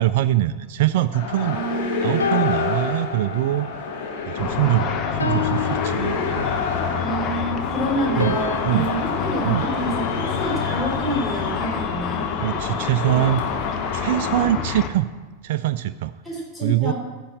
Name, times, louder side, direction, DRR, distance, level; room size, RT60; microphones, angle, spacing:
voice 1, 0.0-3.7 4.3-6.6 8.1-8.4 8.6-8.9 9.4-9.7 12.4-13.4 13.9-15.1 15.4-16.1 16.6-16.9, right 13 dB, 50° right, 13 dB, 0.3 m, -23 dB
sound 1, 1.1-14.5, left 4 dB, 50° left, 2.1 m, -30 dB
voice 2, 1.5-2.4 7.0-12.3 16.2-16.9, right 1 dB, 10° left, -4 dB, 3.5 m, -28 dB
sound 2, 2.2-3.8 4.2-4.5 5.2-6.9 8.2-10.6, left 8 dB, 75° left, 1.0 m, -30 dB
Car / Traffic noise roadway noise / Engine, 4.4-14.9, left 7 dB, 35° left, 1.1 m, -28 dB
14.0 x 5.3 x 7.5 m, 1.4 s
figure-of-eight pair, 90°, 0 cm